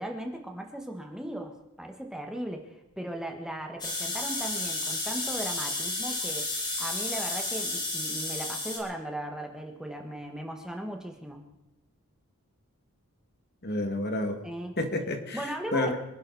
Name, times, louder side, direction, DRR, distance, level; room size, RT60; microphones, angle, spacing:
voice 1, 0.0-6.5 6.8-11.4 14.4-14.7 15.3-16.0, right 1 dB, 5° right, 3 dB, 1.4 m, -37 dB
sound 1, 3.8-8.8, left 2 dB, 20° left, 3.3 m, -32 dB
voice 2, 13.6-14.4 14.8-16.0, left 1 dB, 45° left, 5 dB, 2.1 m, -30 dB
26.0 x 11.5 x 4.1 m, 0.97 s
head